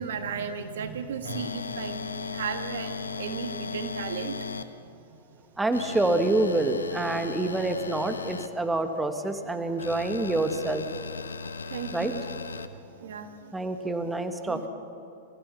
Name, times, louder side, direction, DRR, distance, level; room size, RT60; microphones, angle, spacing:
voice 1, 0.0-4.6 11.7-12.3 12.7-13.5 14.5-14.7, right 6 dB, 65° right, 8 dB, 1.7 m, -35 dB
sound 1, 1.2-4.6 5.7-8.5 9.8-12.7, left 4 dB, 85° left, 1.0 m, -36 dB
voice 2, 5.6-10.8 11.9-12.1 13.5-14.7, right 2 dB, 10° right, 7 dB, 1.4 m, -27 dB
25.5 x 15.5 x 7.0 m, 2.6 s
figure-of-eight pair, 105°, 0 cm